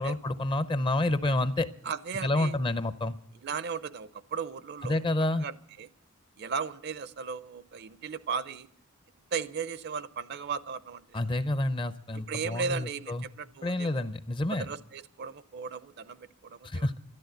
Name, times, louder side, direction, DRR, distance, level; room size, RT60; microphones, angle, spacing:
voice 1, 0.0-1.7 2.2-3.2 4.8-5.5 11.1-13.2 13.6-14.7 16.6-17.0, left 2 dB, 25° left, 14 dB, 0.5 m, -29 dB
voice 2, 1.8-2.6 3.4-5.1 5.4-5.9 6.4-8.7 9.3-11.2 12.3-14.0 14.6-16.9, right 5 dB, 50° right, 16 dB, 0.5 m, -36 dB
13.0 x 11.5 x 7.9 m, 0.64 s
head